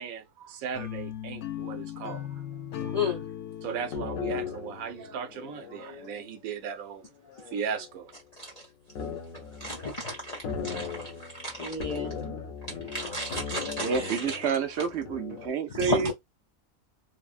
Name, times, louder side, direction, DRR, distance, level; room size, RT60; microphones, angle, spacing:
voice 1, 0.0-2.3 2.8-3.1 3.6-7.1 7.5-8.1, right 7 dB, 90° right, 1.1 m, -37 dB
sound 1, 0.7-5.8, left 10 dB, 65° left, 0.8 m, -39 dB
voice 2, 2.9-3.2 8.4-8.5 9.6-12.2 12.9-14.4 15.7-16.1, left 2 dB, 50° left, 0.5 m, -33 dB
sound 2, 3.9-6.4 7.2-8.2 8.9-15.5, left 6 dB, 80° left, 1.2 m, -38 dB
voice 3, 13.8-16.1, right 6 dB, 65° right, 0.7 m, -28 dB
3.3 x 2.1 x 2.4 m
omnidirectional pair, 1.4 m